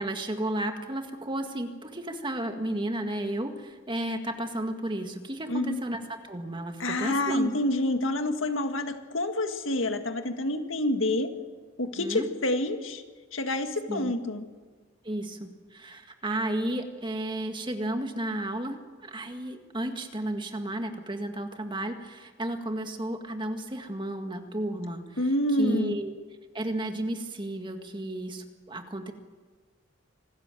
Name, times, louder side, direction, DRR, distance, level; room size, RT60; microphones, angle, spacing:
voice 1, 0.0-7.5 12.0-12.3 13.9-14.1 15.0-25.0 25.6-26.1 26.5-29.1, right 1 dB, 25° right, 5 dB, 1.9 m, -33 dB
voice 2, 5.5-5.8 6.8-11.3 11.8-13.0 13.3-14.4 25.2-26.0, left 1 dB, 90° left, 6 dB, 1.9 m, -28 dB
25.5 x 13.5 x 9.1 m, 1.4 s
head